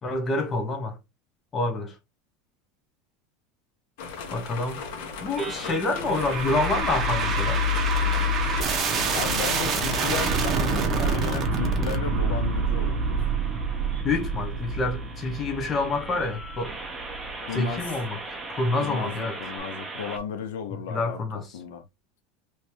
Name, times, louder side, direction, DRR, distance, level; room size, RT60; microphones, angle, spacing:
voice 1, 0.0-1.0 1.5-1.9 4.3-4.8 5.2-7.6 14.0-16.8 17.5-19.4 20.9-21.4, left 2 dB, 25° left, 1.1 m, -27 dB
sound 1, 4.0-10.4, left 5 dB, 65° left, 1.4 m, -38 dB
sound 2, 5.3-20.2, right 3 dB, 10° right, 1.1 m, -41 dB
sound 3, 6.1-17.3, right 2 dB, 30° right, 1.0 m, -26 dB
voice 2, 9.1-13.3 17.4-18.0 18.8-21.9, left 7 dB, 85° left, 0.7 m, -35 dB
3.2 x 3.1 x 2.8 m
supercardioid pair, 135°, 0 cm